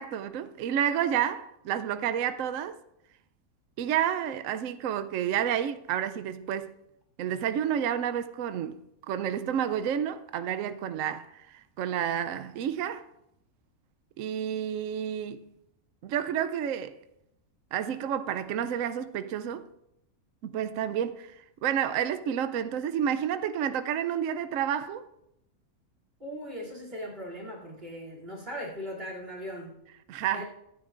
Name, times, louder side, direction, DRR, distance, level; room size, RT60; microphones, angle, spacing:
voice 1, 0.0-2.8 3.8-6.7 7.2-8.8 9.1-13.1 14.2-15.5 16.0-17.0 17.7-19.7 20.4-25.1 30.1-30.5, right 9 dB, 70° right, 0.9 m, -30 dB
voice 2, 26.2-29.8 30.3-30.5, equal, 40° right, 3.1 m, -39 dB
25.0 x 9.2 x 2.5 m
omnidirectional pair, 1.5 m